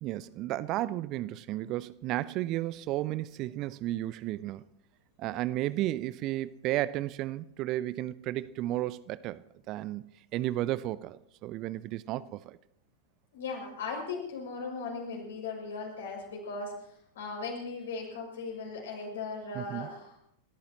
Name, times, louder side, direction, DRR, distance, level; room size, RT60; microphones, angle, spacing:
voice 1, 0.0-4.6 5.2-12.6 19.5-19.9, right 15 dB, 40° right, 18 dB, 0.5 m, -33 dB
voice 2, 13.3-20.2, left 4 dB, 65° left, 0 dB, 6.2 m, -38 dB
28.5 x 13.5 x 2.9 m, 0.76 s
figure-of-eight pair, 90°, 0 cm